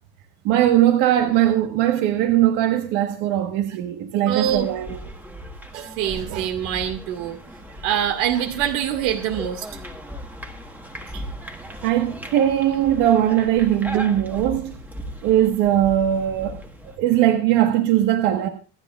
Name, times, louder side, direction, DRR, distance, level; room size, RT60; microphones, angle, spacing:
voice 1, 0.4-5.0 11.8-14.8 15.2-16.6 17.0-18.5, right 12 dB, 65° right, 1.6 m, -20 dB
voice 2, 4.3-4.7 5.7-7.4 7.8-9.7 11.1-11.2, right 10 dB, 80° right, 2.2 m, -24 dB
sound 1, 4.4-17.0, equal, 5° right, 1.4 m, -37 dB
26.5 x 9.7 x 2.5 m
cardioid pair, 175°, 35 cm